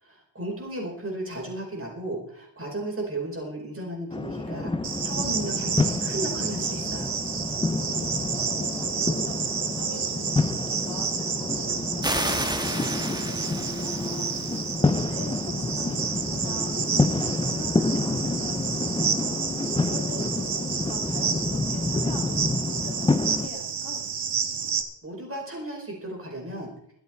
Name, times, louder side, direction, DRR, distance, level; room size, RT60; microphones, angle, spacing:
voice 1, 0.0-4.7 5.0-7.1 25.0-26.7, right 1 dB, 30° right, -1 dB, 5.1 m, -35 dB
sound 1, 4.1-23.5, left 3 dB, 10° left, 0.5 m, -28 dB
Cricket, 4.8-24.8, right 6 dB, 60° right, 1.7 m, -30 dB
voice 2, 7.5-24.0, left 3 dB, 55° left, 3 dB, 2.6 m, -43 dB
sound 2, 12.0-14.6, right 1 dB, 10° right, 1.3 m, -31 dB
23.5 x 8.1 x 4.6 m, 0.71 s
wide cardioid pair, 135°, 46 cm